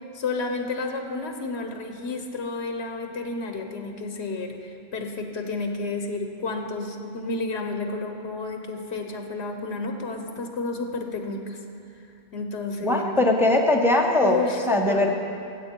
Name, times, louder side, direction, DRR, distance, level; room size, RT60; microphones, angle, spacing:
voice 1, 0.1-11.6 12.3-13.2 14.2-15.1, left 3 dB, 80° left, 4 dB, 1.2 m, -31 dB
voice 2, 12.8-14.4 14.7-15.1, left 2 dB, 5° right, 1 dB, 0.7 m, -20 dB
15.5 x 8.0 x 4.5 m, 2.6 s
omnidirectional pair, 1.1 m